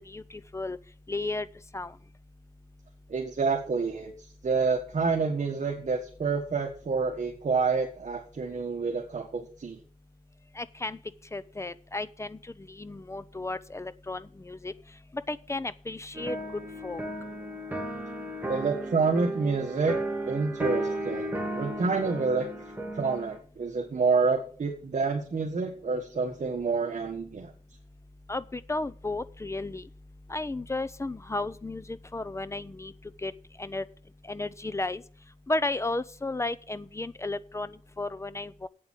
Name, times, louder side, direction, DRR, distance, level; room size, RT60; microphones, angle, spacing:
voice 1, 0.1-0.8 1.1-1.5 1.7-1.9 10.5-11.0 11.3-14.7 15.3-17.0 28.3-29.8 30.3-32.9 33.2-33.3 33.6-33.8 34.2-35.0 35.5-38.7, left 2 dB, 20° left, 15 dB, 0.6 m, -34 dB
voice 2, 3.1-9.8 18.4-20.0 20.2-22.5 22.9-27.5, right 4 dB, 55° right, 2 dB, 1.7 m, -28 dB
sound 1, 16.1-23.4, right 1 dB, 10° right, 2.4 m, -34 dB
8.7 x 7.5 x 7.4 m, 0.43 s
wide cardioid pair, 110°, 15 cm